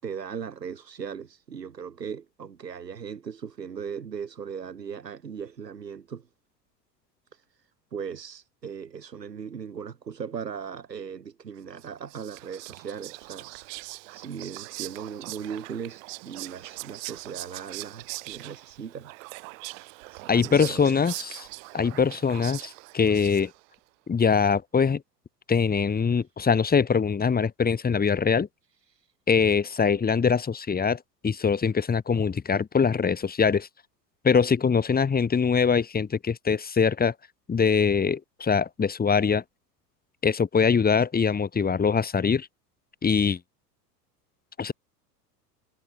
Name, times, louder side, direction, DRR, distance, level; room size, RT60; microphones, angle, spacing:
voice 1, 0.0-6.3 7.3-19.4 20.1-21.2 26.1-26.2 28.9-29.1, right 7 dB, 75° right, 7.1 m, -38 dB
Whispering, 11.8-23.8, right 28 dB, 50° right, 5.5 m, -41 dB
voice 2, 20.3-21.5 21.7-23.5 24.1-25.0 25.5-28.5 29.3-33.7 34.2-37.1 37.5-39.4 40.2-42.5 43.0-43.4 44.6-44.7, left 6 dB, 20° left, 6.8 m, -23 dB
figure-of-eight pair, 85°, 49 cm